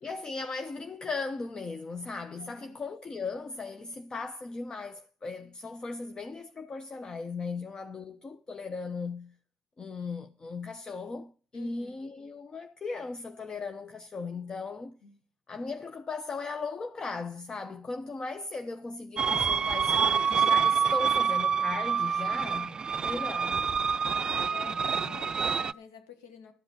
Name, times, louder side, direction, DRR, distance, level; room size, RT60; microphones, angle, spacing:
voice 1, 0.0-9.3 9.8-14.9 15.5-23.7, left 4 dB, 40° left, 1.0 m, -37 dB
voice 2, 2.4-2.8 11.5-12.0 15.0-15.2 23.7-23.9 24.2-26.5, left 6 dB, 85° left, 1.8 m, -50 dB
sound 1, 19.2-25.7, right 6 dB, 40° right, 0.5 m, -27 dB
13.0 x 8.0 x 5.6 m
hypercardioid pair, 50°, 2 cm